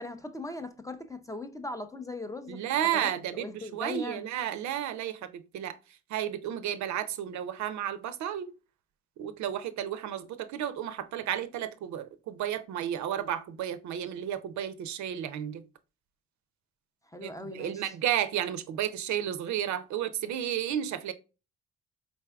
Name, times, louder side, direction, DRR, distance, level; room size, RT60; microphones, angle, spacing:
voice 1, 0.0-4.2 17.1-17.9, left 2 dB, 10° left, 0.4 m, -39 dB
voice 2, 2.5-5.8 6.1-8.5 9.2-15.6 17.2-21.1, right 10 dB, 70° right, 0.5 m, -32 dB
4.2 x 3.3 x 2.2 m
cardioid pair, 90°, 30 cm